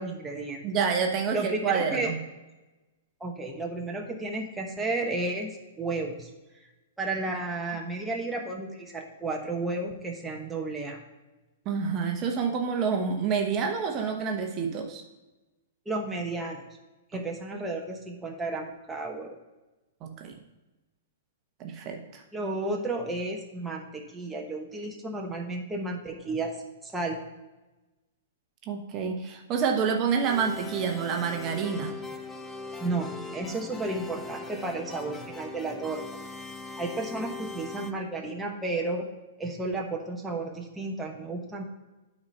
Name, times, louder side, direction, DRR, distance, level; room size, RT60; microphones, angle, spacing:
voice 1, 0.0-0.6 1.3-2.1 3.2-6.3 7.0-11.0 15.9-16.6 17.1-19.3 22.3-26.5 26.8-27.2 32.8-36.0 36.8-39.1 39.4-41.6, right 2 dB, 10° right, 0 dB, 1.0 m, -32 dB
voice 2, 0.6-2.2 11.6-15.0 17.1-17.2 20.0-20.3 21.6-22.2 28.6-31.9, right 6 dB, 35° right, 3 dB, 1.0 m, -28 dB
sound 1, 30.3-37.9, left 3 dB, 15° left, 0.7 m, -40 dB
8.7 x 4.2 x 5.4 m, 1.1 s
hypercardioid pair, 125°, 0 cm